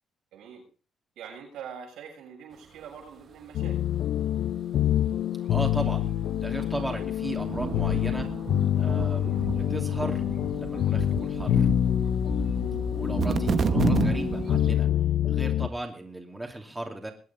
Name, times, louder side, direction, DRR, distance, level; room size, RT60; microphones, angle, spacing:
voice 1, 0.3-0.6 1.2-3.8, right 7 dB, 85° right, 0 dB, 7.1 m, -43 dB
sound 1, 3.5-15.7, left 10 dB, 75° left, 0.7 m, -26 dB
voice 2, 5.5-6.1 6.4-8.3 8.8-10.2 10.6-11.7 12.9-14.9 15.3-17.1, right 1 dB, 10° right, 1 dB, 2.8 m, -36 dB
sound 2, 6.6-6.7 7.2-14.8, right 6 dB, 55° right, 1.0 m, -31 dB
21.5 x 8.6 x 4.3 m, 0.39 s
cardioid pair, 90°, 0 cm